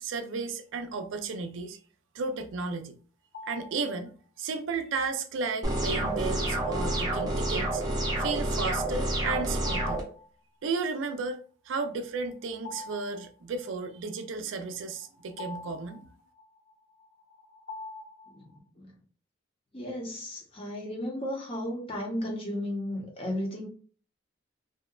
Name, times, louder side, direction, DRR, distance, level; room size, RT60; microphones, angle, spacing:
voice 1, 0.0-1.8 2.2-2.9 3.5-7.8 8.2-10.0 10.6-11.4 11.7-16.1, right 4 dB, 75° right, 0.4 m, -33 dB
sound 1, 3.3-4.0 6.6-7.3 9.5-10.3 10.6-10.7 12.2-13.7 14.7-18.6, left 3 dB, 70° left, 1.1 m, -45 dB
sound 2, 5.6-10.0, right 1 dB, 20° right, 0.5 m, -29 dB
voice 2, 18.3-18.9 19.7-23.7, left 1 dB, 30° left, 0.6 m, -34 dB
2.7 x 2.1 x 2.3 m
head